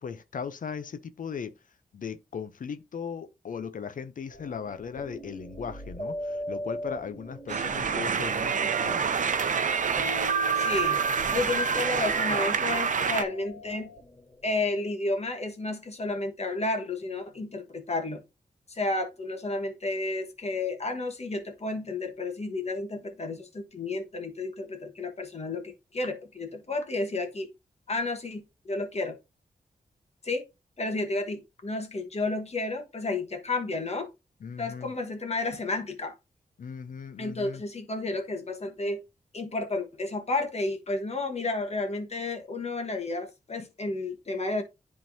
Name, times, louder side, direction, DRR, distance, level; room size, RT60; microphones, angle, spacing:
voice 1, 0.0-1.5 1.9-9.1 34.4-34.9 36.6-37.6, left 6 dB, 65° left, 0.6 m, -38 dB
sound 1, 4.3-14.7, left 1 dB, 30° left, 2.8 m, -41 dB
sound 2, 7.5-13.2, right 6 dB, 60° right, 0.7 m, -27 dB
voice 2, 10.5-11.0 11.3-13.9 14.4-18.2 18.7-27.5 27.9-29.2 30.2-30.4 30.8-34.1 34.6-36.1 37.2-39.0 39.3-44.6, left 2 dB, 50° left, 1.4 m, -31 dB
10.0 x 3.7 x 2.7 m
cardioid pair, 60°, 15 cm